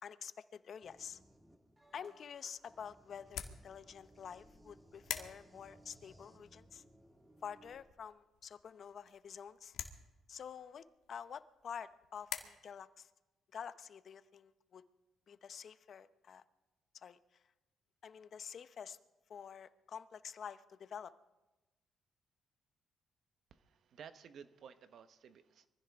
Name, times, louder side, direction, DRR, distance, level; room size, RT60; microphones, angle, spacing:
voice 1, 0.0-1.2 1.9-6.8 7.4-9.7 10.3-13.1 13.5-14.8 15.3-16.4 16.9-17.4 18.0-19.0 19.3-21.1, left 7 dB, 55° left, 13 dB, 0.7 m, -49 dB
sound 1, 0.8-7.8, right 1 dB, 15° right, 1.6 m, -63 dB
sound 2, 1.8-12.4, left 9 dB, 80° left, 1.3 m, -50 dB
voice 2, 23.5-25.7, right 7 dB, 65° right, 11 dB, 0.9 m, -55 dB
23.5 x 15.5 x 3.5 m, 1.1 s
cardioid pair, 90°, 0 cm